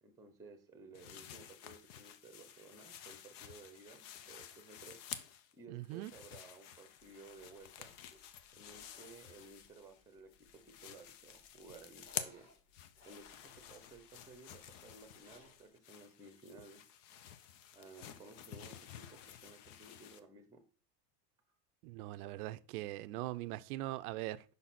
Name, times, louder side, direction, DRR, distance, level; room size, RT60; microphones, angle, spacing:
voice 1, 0.0-5.0 5.5-7.9 8.5-12.5 13.1-16.8 17.7-20.6 21.5-21.6, right 3 dB, 5° right, 1.0 m, -56 dB
sound 1, 0.9-5.5 5.8-10.0 10.3-20.2, left 10 dB, 45° left, 0.7 m, -50 dB
voice 2, 5.7-6.1 21.8-24.4, right 16 dB, 65° right, 0.6 m, -41 dB
sound 2, 7.0-15.7, left 2 dB, 70° left, 3.4 m, -67 dB
5.5 x 4.1 x 5.8 m
supercardioid pair, 125°, 49 cm